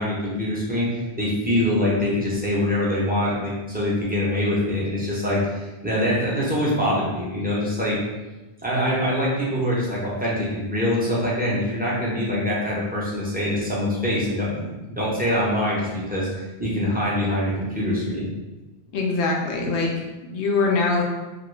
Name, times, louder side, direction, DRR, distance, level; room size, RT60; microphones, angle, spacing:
voice 1, 0.0-8.0 8.6-18.3, left 1 dB, 10° right, -7 dB, 0.6 m, -24 dB
voice 2, 18.9-19.9 20.3-21.0, left 3 dB, 80° left, 0 dB, 0.9 m, -22 dB
2.9 x 2.5 x 3.1 m, 1.1 s
omnidirectional pair, 1.1 m